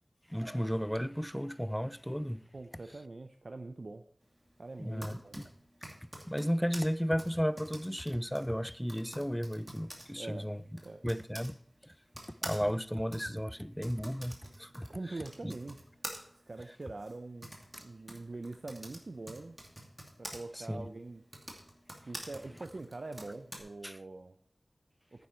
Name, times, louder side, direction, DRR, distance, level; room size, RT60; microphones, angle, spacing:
voice 1, 0.3-2.4 4.8-5.4 6.0-10.6 11.0-11.6 11.8-11.9 12.4-15.5 20.5-20.9 23.8-24.0, equal, 5° left, 0.4 m, -34 dB
voice 2, 2.5-4.0 4.6-5.3 10.2-10.5 10.8-11.0 14.9-15.8 16.5-19.6 20.2-21.2 22.1-24.4, right 2 dB, 55° right, 0.6 m, -44 dB
Typing, 4.7-11.5 12.1-20.4 21.2-23.6, right 1 dB, 15° right, 2.4 m, -48 dB
10.0 x 9.5 x 4.4 m
wide cardioid pair, 75°, 0 cm